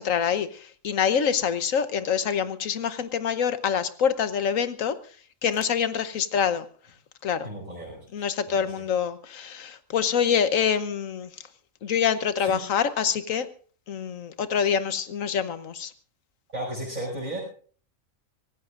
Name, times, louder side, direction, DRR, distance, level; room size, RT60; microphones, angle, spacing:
voice 1, 0.0-5.0 5.4-6.7 7.2-7.5 8.1-11.3 11.8-13.5 13.9-15.9, left 7 dB, 90° left, 12 dB, 1.4 m, -26 dB
voice 2, 7.4-8.7 12.4-12.6 16.5-17.4, right 1 dB, 35° right, -5 dB, 6.5 m, -35 dB
24.5 x 18.0 x 2.5 m, 0.43 s
omnidirectional pair, 1.3 m